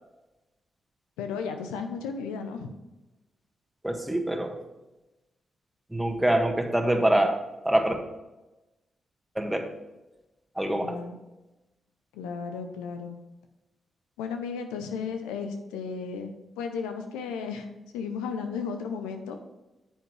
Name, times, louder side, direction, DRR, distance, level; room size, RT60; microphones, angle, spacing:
voice 1, 1.2-2.7 10.8-11.1 12.1-13.2 14.2-16.3 16.6-17.7 17.9-19.4, left 5 dB, 90° left, 6 dB, 0.7 m, -34 dB
voice 2, 3.8-4.6 5.9-7.9 9.3-9.7 10.5-11.0, right 1 dB, 10° right, 4 dB, 1.5 m, -25 dB
8.9 x 7.4 x 3.4 m, 1.0 s
hypercardioid pair, 45°, 0 cm